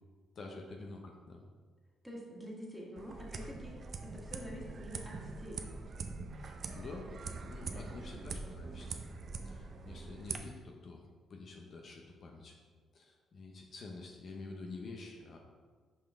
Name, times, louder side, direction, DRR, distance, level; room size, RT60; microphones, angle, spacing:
voice 1, 0.3-1.5 6.4-7.1 7.4-9.0 9.4-11.0 11.3-12.6 12.9-15.4, left 3 dB, 55° left, 1 dB, 0.7 m, -48 dB
voice 2, 2.0-5.6 7.6-7.8 8.2-8.6, equal, ahead, -4 dB, 1.6 m, -47 dB
sound 1, 3.0-10.4, right 4 dB, 50° right, 0.5 m, -43 dB
5.5 x 5.2 x 3.6 m, 1.5 s
cardioid pair, 90°, 0 cm